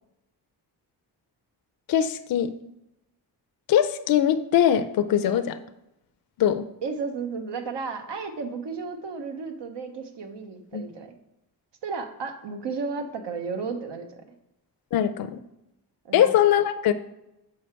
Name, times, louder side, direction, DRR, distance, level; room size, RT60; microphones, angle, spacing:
voice 1, 1.9-2.5 3.7-5.6 6.4-6.7 10.7-10.8 14.9-15.4 16.1-16.9, left 10 dB, 55° left, 9 dB, 0.5 m, -21 dB
voice 2, 6.8-11.1 11.8-14.2 16.0-16.3, right 4 dB, 80° right, 6 dB, 1.0 m, -33 dB
6.4 x 4.8 x 4.4 m, 0.89 s
cardioid pair, 95°, 42 cm